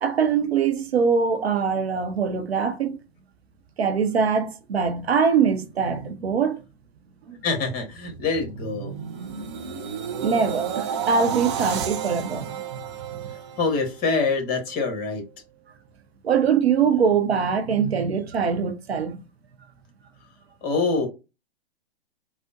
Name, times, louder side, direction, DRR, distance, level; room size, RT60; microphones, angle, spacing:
voice 1, 0.0-3.0 3.8-6.6 7.3-7.4 10.2-12.8 13.1-13.3 16.2-19.2, right 6 dB, 75° right, 0.7 m, -23 dB
voice 2, 7.4-8.9 13.6-15.2 20.6-21.1, left 4 dB, 30° left, 1.2 m, -25 dB
sound 1, 7.9-14.1 14.5-14.8, right 7 dB, 30° right, 0.3 m, -32 dB
3.5 x 2.0 x 2.6 m
figure-of-eight pair, 110°, 32 cm